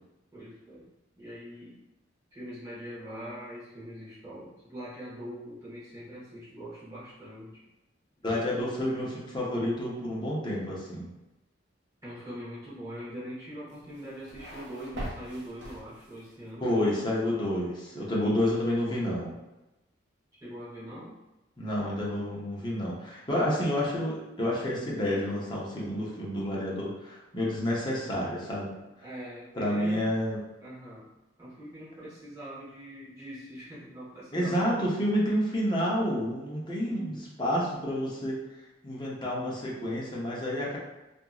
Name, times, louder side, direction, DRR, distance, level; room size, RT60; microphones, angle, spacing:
voice 1, 0.3-0.9 1.2-1.8 2.3-7.7 8.7-9.0 12.0-17.4 20.4-21.2 29.0-30.1 30.6-31.1 31.4-34.8 36.9-37.2, equal, 20° right, -10 dB, 1.2 m, -42 dB
voice 2, 8.2-11.1 16.6-19.3 21.6-28.7 29.5-30.4 34.3-38.4 38.8-40.8, left 1 dB, 25° left, -5 dB, 0.7 m, -29 dB
sound 1, 13.7-16.4, equal, 65° right, 0.6 m, -42 dB
2.8 x 2.5 x 2.3 m, 1.0 s
head